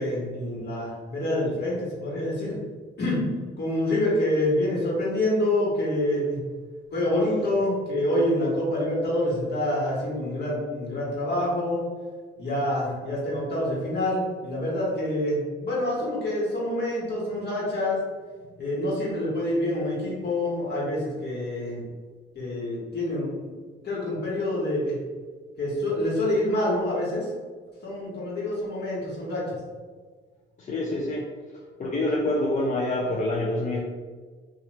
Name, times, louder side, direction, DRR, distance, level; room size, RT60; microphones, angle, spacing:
voice 1, 0.0-2.6 3.0-3.2 3.6-6.4 6.9-11.8 12.4-18.0 18.6-21.8 22.3-23.5 23.8-25.0 25.6-27.3 27.8-29.4, left 1 dB, 55° left, -6 dB, 1.4 m, -26 dB
voice 2, 30.6-31.3 31.8-33.8, left 1 dB, 40° left, -3 dB, 0.5 m, -26 dB
2.9 x 2.4 x 3.0 m, 1.5 s
cardioid pair, 90°, 20 cm